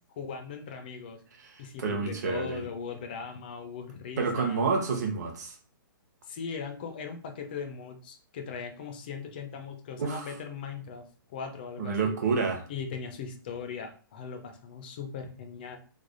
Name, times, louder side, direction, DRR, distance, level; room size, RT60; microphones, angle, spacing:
voice 1, 0.2-1.2 1.6-4.7 6.3-12.2 12.7-15.8, left 6 dB, 25° left, 6 dB, 0.4 m, -39 dB
voice 2, 1.5-2.6 4.2-5.5 10.0-10.3 11.8-12.6, right 4 dB, 50° right, 4 dB, 0.8 m, -29 dB
3.2 x 2.0 x 3.7 m, 0.40 s
hypercardioid pair, 175°, 12 cm